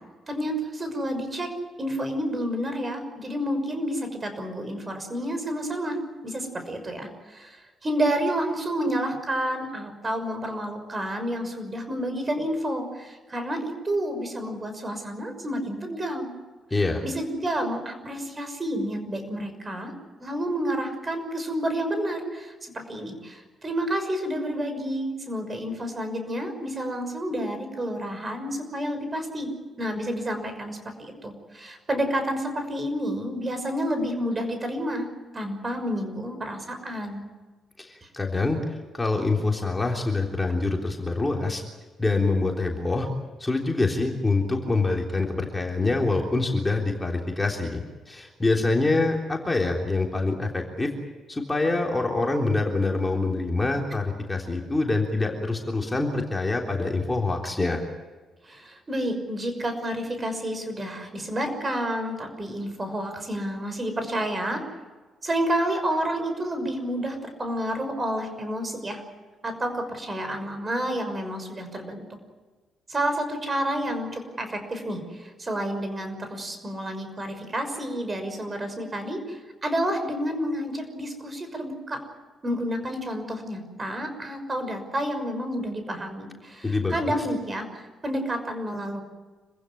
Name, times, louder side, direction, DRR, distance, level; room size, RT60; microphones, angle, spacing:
voice 1, 0.3-1.5 1.8-6.0 6.2-16.3 16.7-19.9 20.2-29.5 29.8-35.1 35.3-37.3 38.0-38.1 58.4-64.6 65.2-69.0 69.4-72.0 72.9-82.0 82.4-89.0, equal, 25° right, 7 dB, 6.0 m, -30 dB
voice 2, 16.7-17.0 37.8-41.6 42.0-43.1 43.4-50.9 51.3-57.8 86.6-87.0, left 3 dB, 15° left, 1 dB, 3.4 m, -25 dB
26.5 x 15.5 x 9.9 m, 1.3 s
cardioid pair, 90°, 0 cm